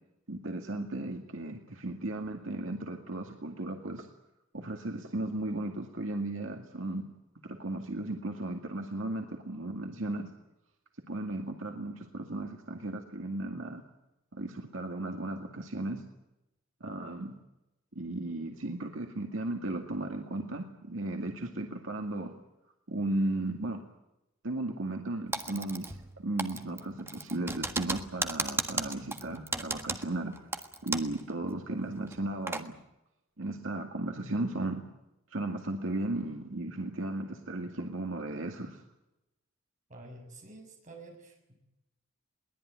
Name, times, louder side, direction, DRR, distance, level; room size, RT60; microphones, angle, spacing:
voice 1, 0.3-4.1 4.5-7.0 7.4-10.3 11.1-13.8 14.3-16.0 16.8-17.3 18.0-22.3 22.9-23.8 24.4-32.7 33.4-34.8 35.3-38.8, right 2 dB, 75° right, 3 dB, 2.2 m, -35 dB
Typing, 25.3-26.1 26.4-31.2 31.5-31.6 32.1-32.7, right 3 dB, 10° right, 1.5 m, -35 dB
voice 2, 39.9-41.6, right 2 dB, 40° right, 2 dB, 6.9 m, -49 dB
22.0 x 19.0 x 9.5 m, 0.91 s
head